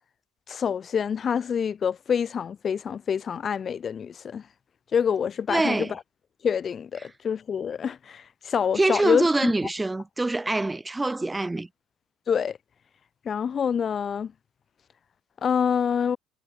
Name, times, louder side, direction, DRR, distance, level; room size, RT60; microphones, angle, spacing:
voice 1, 0.5-4.4 4.9-6.0 6.4-9.5 12.3-12.6 13.2-14.3 15.4-16.2, left 7 dB, 35° left, 5.0 m, -26 dB
voice 2, 5.5-5.9 8.7-11.7, right 2 dB, 10° right, 3.0 m, -25 dB
cardioid pair, 110°, 0 cm